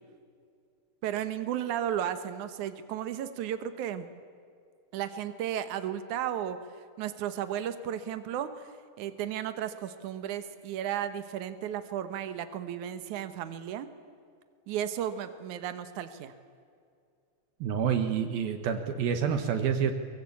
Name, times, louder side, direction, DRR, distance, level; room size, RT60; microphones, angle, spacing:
voice 1, 1.0-4.1 4.9-6.6 7.0-8.7 9.0-13.9 14.7-16.3, right 10 dB, 85° right, 11 dB, 1.7 m, -34 dB
voice 2, 17.6-19.9, right 7 dB, 65° right, 8 dB, 2.7 m, -28 dB
24.5 x 23.0 x 8.5 m, 2.3 s
omnidirectional pair, 5.3 m